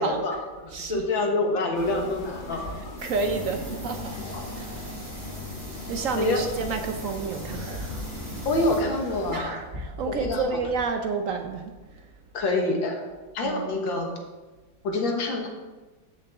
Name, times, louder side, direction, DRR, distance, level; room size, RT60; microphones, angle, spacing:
voice 1, 0.0-2.8 4.3-4.5 6.2-6.5 8.5-9.6 10.0-10.4 12.3-13.1 13.3-14.1 14.8-15.5, left 2 dB, 75° left, 2 dB, 2.1 m, -26 dB
voice 2, 0.7-1.0 3.0-4.8 5.9-8.0 9.3-11.7 13.4-13.8, right 4 dB, 65° right, 6 dB, 0.8 m, -30 dB
sound 1, 1.7-9.4, left 2 dB, 25° left, 1.6 m, -41 dB
sound 2, 3.0-8.8, left 1 dB, 50° right, 3.1 m, -38 dB
sound 3, 7.4-10.9, left 1 dB, 35° right, 1.2 m, -39 dB
13.5 x 6.8 x 3.5 m, 1.2 s
omnidirectional pair, 2.1 m